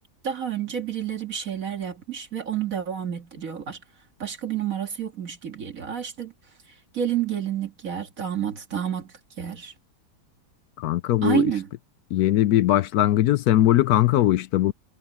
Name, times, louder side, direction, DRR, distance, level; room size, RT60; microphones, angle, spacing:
voice 1, 0.2-3.8 4.2-6.3 6.9-9.7 11.2-11.7, right 9 dB, 55° right, 2.2 m, -29 dB
voice 2, 10.8-11.5 12.1-14.7, left 14 dB, 75° left, 1.0 m, -20 dB
omnidirectional pair, 1.8 m